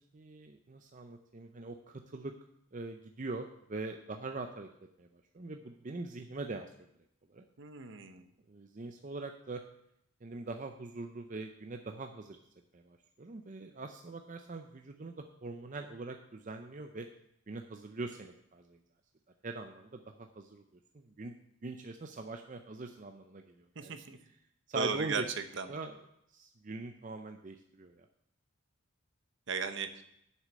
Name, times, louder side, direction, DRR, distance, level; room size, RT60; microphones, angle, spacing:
voice 1, 0.1-2.3 2.7-4.7 5.0-5.1 5.3-6.7 7.3-7.4 8.5-9.6 10.2-12.4 12.7-17.1 17.5-18.8 19.4-20.6 21.0-21.4 21.6-24.0 24.7-25.3 25.7-26.0 26.3-28.1, right 3 dB, 35° right, 5 dB, 0.5 m, -42 dB
voice 2, 7.6-8.3 23.8-24.2 24.7-25.2 25.6-25.7 29.5-30.0, right 5 dB, 55° right, 9 dB, 0.9 m, -36 dB
7.6 x 6.3 x 7.4 m, 0.75 s
head